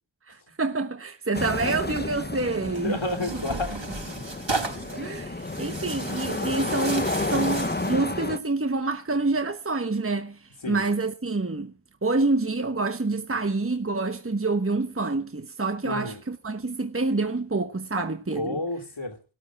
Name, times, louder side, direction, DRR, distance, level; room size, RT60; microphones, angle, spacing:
voice 1, 0.3-3.0 4.9-11.7 12.0-18.6, right 3 dB, 25° right, 1.2 m, -27 dB
sound 1, 1.3-8.4, left 2 dB, 20° left, 1.0 m, -31 dB
Tearing, 2.7-8.1, right 3 dB, 65° right, 4.8 m, -35 dB
voice 2, 2.8-3.8 10.6-10.8 15.8-16.2 18.0-18.1 18.3-19.2, left 2 dB, 65° left, 2.8 m, -30 dB
13.5 x 12.0 x 6.0 m
wide cardioid pair, 45°, 49 cm